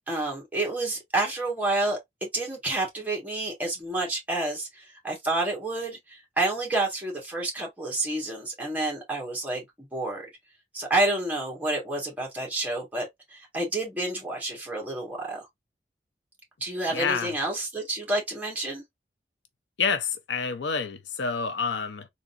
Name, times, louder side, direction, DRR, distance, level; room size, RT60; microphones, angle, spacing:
voice 1, 0.1-10.3 10.7-15.4 16.6-18.8, right 2 dB, 10° right, 1.6 m, -29 dB
voice 2, 16.9-17.3 19.8-22.1, left 5 dB, 85° left, 0.6 m, -28 dB
3.8 x 2.7 x 2.5 m
head